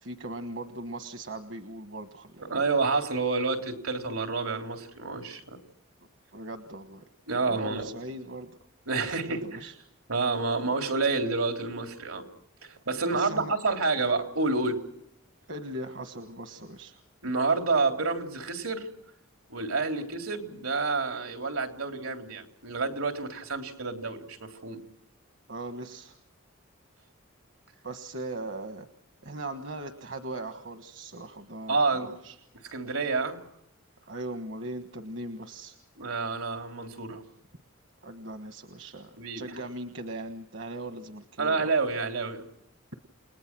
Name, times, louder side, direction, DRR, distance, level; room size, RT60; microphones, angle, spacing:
voice 1, 0.0-2.5 6.3-7.0 7.5-8.5 9.1-9.7 13.1-13.5 15.5-17.0 25.5-26.2 27.8-28.9 29.2-32.3 34.0-35.8 38.0-41.7, right 2 dB, 65° right, 7 dB, 1.4 m, -39 dB
voice 2, 2.5-5.6 7.3-7.9 8.9-9.7 10.1-12.2 12.6-14.8 17.2-18.9 19.5-24.8 31.7-32.1 32.6-33.4 36.0-37.2 39.2-39.5 41.4-42.5, right 3 dB, 85° right, 4 dB, 3.7 m, -29 dB
29.5 x 20.0 x 6.2 m, 0.76 s
head